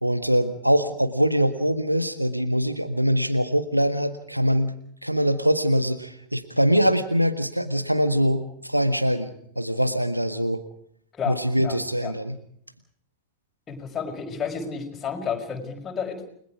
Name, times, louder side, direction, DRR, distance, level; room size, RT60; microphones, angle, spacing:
voice 1, 0.0-4.7 5.0-10.6 11.3-12.4, equal, 90° right, 9 dB, 1.6 m, -23 dB
voice 2, 11.2-12.1 13.7-16.2, left 6 dB, 20° left, 2 dB, 5.7 m, -31 dB
30.0 x 21.5 x 4.8 m, 0.67 s
figure-of-eight pair, 90°, 0 cm